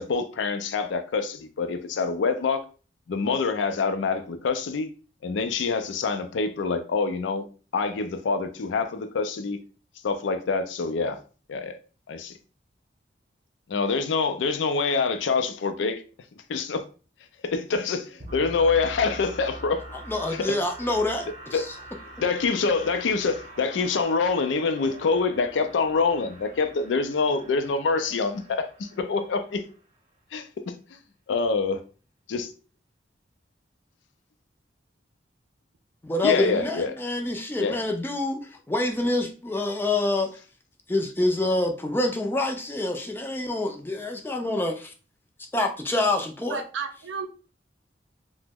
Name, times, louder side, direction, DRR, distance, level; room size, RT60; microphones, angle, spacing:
voice 1, 0.0-2.7 3.1-4.9 5.2-7.5 7.7-9.6 10.0-11.2 11.5-11.8 12.1-12.4 13.7-16.0 16.5-16.9 17.4-19.9 20.3-20.6 21.5-21.7 22.2-29.6 30.3-30.8 31.3-31.8 32.3-32.5 36.2-37.0 37.6-37.8, left 4 dB, 85° left, 0.4 m, -26 dB
sound 1, 18.2-30.0, right 1 dB, 35° right, 0.7 m, -44 dB
voice 2, 20.1-21.7 36.0-40.3 40.9-44.9 45.5-46.6, left 2 dB, 10° left, 0.3 m, -26 dB
voice 3, 46.5-47.3, right 5 dB, 90° right, 0.5 m, -32 dB
2.9 x 2.1 x 3.4 m
head